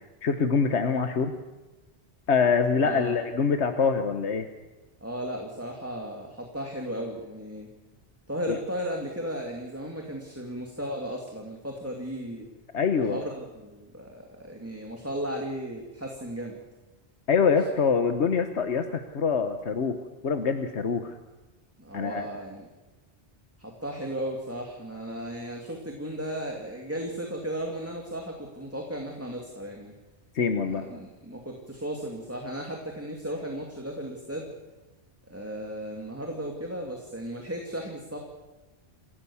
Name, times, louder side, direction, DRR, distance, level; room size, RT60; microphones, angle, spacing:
voice 1, 0.2-1.3 2.3-4.5 8.5-8.6 12.7-13.2 17.3-20.0 20.2-21.2 21.9-22.3 30.3-30.8, left 5 dB, 85° left, 7 dB, 1.5 m, -24 dB
voice 2, 2.8-3.2 5.0-7.7 8.3-12.5 12.9-16.6 21.8-22.7 23.6-29.9 30.6-34.5 35.3-38.2, equal, 10° right, 1 dB, 2.6 m, -35 dB
28.5 x 16.5 x 7.2 m, 1.2 s
omnidirectional pair, 1.1 m